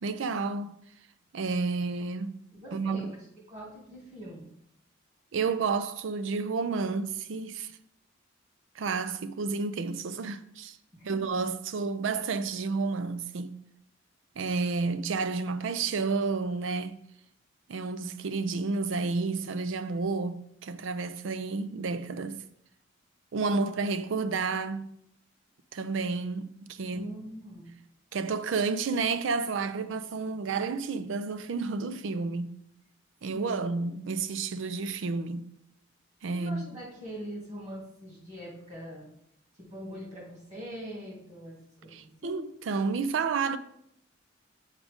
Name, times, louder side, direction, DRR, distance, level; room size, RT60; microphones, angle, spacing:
voice 1, 0.0-0.8 1.3-2.4 2.7-3.1 5.3-7.7 8.8-10.8 11.0-13.5 14.4-17.0 17.7-22.4 23.3-24.9 25.7-27.1 28.1-32.5 33.2-35.5 36.2-36.6 41.9-43.6, right 4 dB, 70° right, 0.4 m, -31 dB
voice 2, 2.5-3.1 3.5-4.4 10.9-11.2 26.9-27.6 29.7-29.8 33.3-33.6 36.3-39.1 39.6-42.4, equal, 35° right, 2.7 m, -42 dB
6.6 x 4.9 x 3.6 m
head